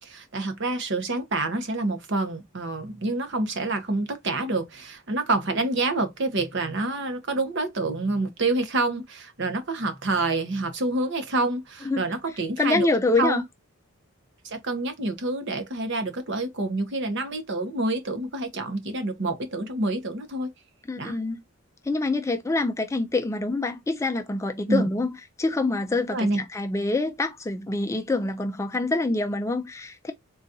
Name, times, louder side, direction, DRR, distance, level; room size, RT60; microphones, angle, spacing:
voice 1, 0.0-12.9 13.2-13.4 14.4-20.5 21.0-21.2 24.7-24.9 26.1-26.4, right 2 dB, 55° right, 0.8 m, -27 dB
voice 2, 12.6-13.4 20.9-21.4 21.8-25.1 25.4-30.1, left 2 dB, 15° left, 0.3 m, -26 dB
3.9 x 2.3 x 2.6 m
head